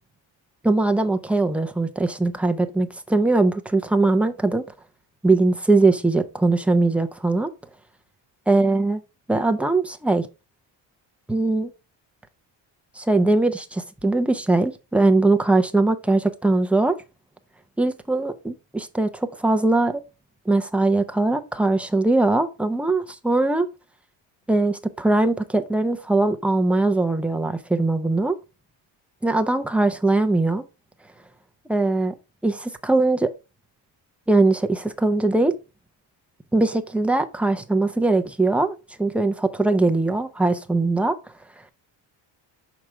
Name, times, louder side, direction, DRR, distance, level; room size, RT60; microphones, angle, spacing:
voice 1, 0.6-4.6 5.2-7.5 8.5-9.0 9.3-10.3 11.3-11.7 13.0-17.0 17.8-20.0 20.5-23.7 24.5-28.4 29.2-30.6 31.7-32.1 32.4-33.3 34.3-35.5 36.5-41.2, right 2 dB, 5° right, 0.5 m, -21 dB
6.0 x 5.1 x 4.3 m
cardioid pair, 135°, 48 cm